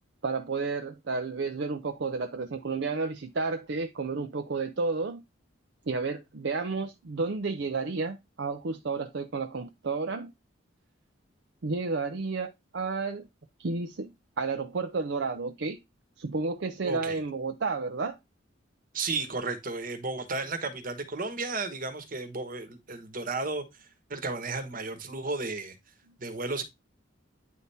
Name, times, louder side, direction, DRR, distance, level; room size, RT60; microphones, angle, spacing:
voice 1, 0.2-5.2 5.9-10.3 11.6-13.3 13.6-15.8 16.2-18.2, right 4 dB, 60° right, 0.6 m, -31 dB
voice 2, 16.8-17.2 18.9-25.8 26.2-26.6, right 3 dB, 45° right, 1.2 m, -34 dB
9.4 x 3.5 x 4.2 m
head